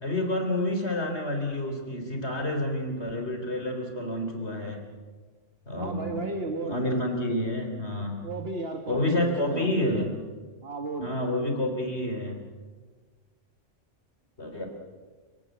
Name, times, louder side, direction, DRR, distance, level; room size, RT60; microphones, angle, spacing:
voice 1, 0.0-4.9 5.7-6.3 6.6-8.2 8.9-10.1 11.0-12.4 14.4-14.7, left 1 dB, 60° left, 4 dB, 4.0 m, -29 dB
voice 2, 5.8-6.8 8.2-9.7 10.6-11.2, right 3 dB, 55° right, 3 dB, 2.0 m, -34 dB
30.0 x 17.5 x 8.1 m, 1.4 s
omnidirectional pair, 1.3 m